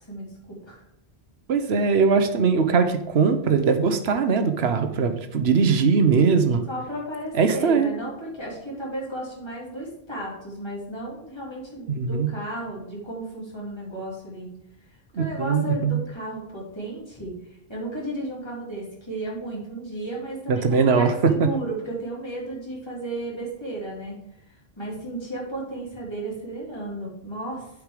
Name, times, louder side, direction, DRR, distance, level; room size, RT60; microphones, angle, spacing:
voice 1, 0.1-0.8 6.7-14.5 14.8-27.7, right 1 dB, 25° left, -5 dB, 2.9 m, -34 dB
voice 2, 1.5-6.6 7.3-7.9 11.9-12.3 15.1-16.0 20.5-21.3, right 5 dB, 80° right, 8 dB, 1.2 m, -21 dB
8.2 x 5.0 x 5.0 m, 0.84 s
omnidirectional pair, 1.1 m